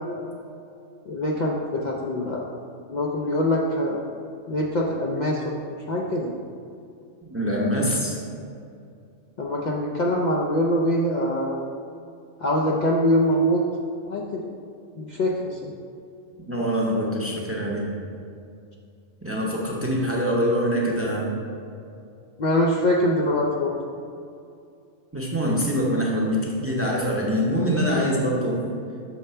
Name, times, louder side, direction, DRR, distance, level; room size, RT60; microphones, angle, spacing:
voice 1, 1.1-2.5 2.9-4.0 4.5-5.6 5.9-6.3 9.4-11.6 12.4-13.6 14.1-14.4 15.0-15.7 22.4-23.7, equal, 90° left, -2 dB, 0.4 m, -23 dB
voice 2, 7.3-8.2 16.4-17.9 19.2-21.4 25.1-28.6, equal, 15° right, -3 dB, 0.5 m, -24 dB
6.5 x 3.2 x 5.5 m, 2.5 s
omnidirectional pair, 1.4 m